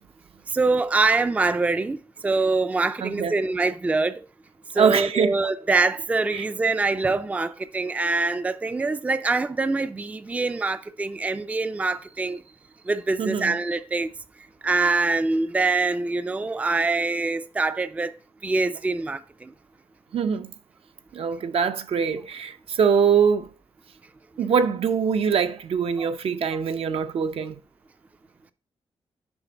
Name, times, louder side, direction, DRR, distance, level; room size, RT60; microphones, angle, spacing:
voice 1, 0.5-4.2 4.7-12.4 12.9-14.1 14.6-18.2 18.4-19.5 26.0-26.1, right 3 dB, 15° right, 0.3 m, -24 dB
voice 2, 3.0-3.3 4.7-5.3 6.3-6.4 13.2-13.5 20.1-20.5 21.1-23.5 24.4-27.6, right 6 dB, 70° right, 0.6 m, -23 dB
7.1 x 5.1 x 3.9 m
wide cardioid pair, 120°, 10 cm